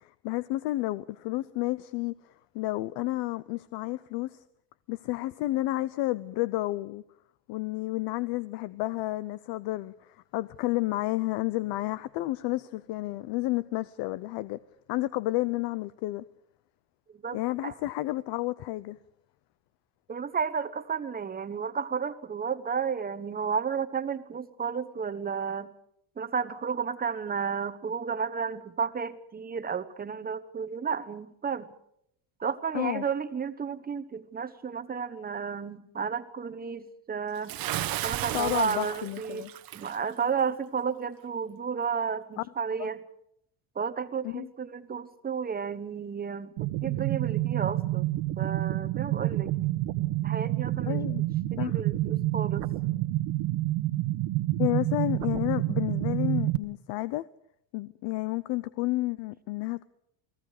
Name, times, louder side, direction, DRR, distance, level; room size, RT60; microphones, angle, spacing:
voice 1, 0.0-2.1 2.5-4.4 4.9-7.0 7.5-14.6 14.9-16.2 17.3-19.0 32.7-33.0 38.3-39.5 42.8-42.9 44.2-44.5 50.8-51.2 51.6-51.8 54.6-57.2 57.7-59.8, left 18 dB, 55° left, 0.7 m, -31 dB
voice 2, 17.1-17.7 20.1-25.7 26.2-31.7 32.4-37.6 38.0-39.5 39.7-43.0 43.7-49.5 50.2-52.7, right 6 dB, 20° right, 1.1 m, -32 dB
Bathtub (filling or washing) / Splash splatter, 37.5-40.0, right 13 dB, 45° right, 1.2 m, -34 dB
sound 1, 46.6-56.6, right 16 dB, 70° right, 1.5 m, -28 dB
29.5 x 19.0 x 4.9 m
cardioid pair, 130°, 48 cm